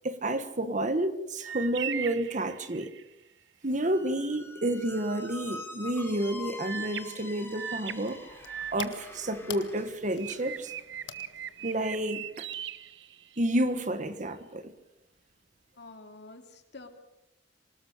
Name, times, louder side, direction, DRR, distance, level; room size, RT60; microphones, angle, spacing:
voice 1, 0.0-2.9 3.6-8.2 8.7-10.7 11.6-12.5 13.4-14.7, right 1 dB, 45° right, 1.6 m, -30 dB
sound 1, 1.4-3.1 6.6-9.8 10.2-13.6, right 10 dB, 70° right, 0.7 m, -40 dB
Squeak, 3.8-9.9, left 3 dB, 15° left, 3.5 m, -45 dB
sound 2, 7.6-13.0, left 7 dB, 90° left, 1.7 m, -47 dB
voice 2, 15.8-16.9, left 3 dB, 65° left, 2.8 m, -48 dB
26.0 x 19.0 x 6.7 m
head